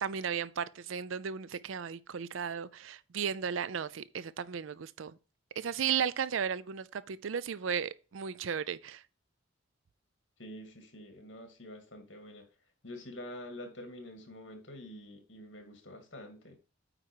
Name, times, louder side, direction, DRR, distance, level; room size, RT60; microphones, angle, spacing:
voice 1, 0.0-5.2 5.6-9.0, right 7 dB, 90° right, 0.5 m, -35 dB
voice 2, 10.4-12.4 12.8-16.5, left 1 dB, 70° left, 2.4 m, -47 dB
8.9 x 4.6 x 4.6 m
head